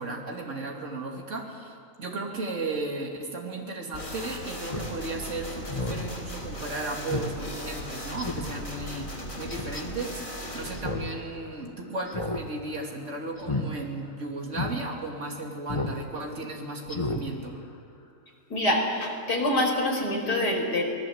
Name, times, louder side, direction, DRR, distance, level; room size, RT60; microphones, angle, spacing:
voice 1, 0.0-17.6, right 2 dB, 45° right, 0 dB, 3.1 m, -35 dB
sound 1, 3.9-10.8, equal, 55° left, 4.5 m, -38 dB
Speech synthesizer, 4.7-4.9 5.3-5.4 5.7-6.0 6.4-6.5 7.1-7.3 7.7-7.8 8.2-8.5 9.5-9.8 10.7-11.1 11.4-11.5 12.1-12.4 12.7-12.9 13.4-13.7 14.1-14.2 14.5-14.7 15.7-16.0 16.3-16.4 16.9-17.2 17.6-17.7, left 2 dB, 20° left, 1.6 m, -32 dB
voice 2, 18.5-20.8, left 1 dB, 80° left, 0 dB, 5.5 m, -25 dB
27.0 x 19.5 x 8.0 m, 2.4 s
omnidirectional pair, 1.7 m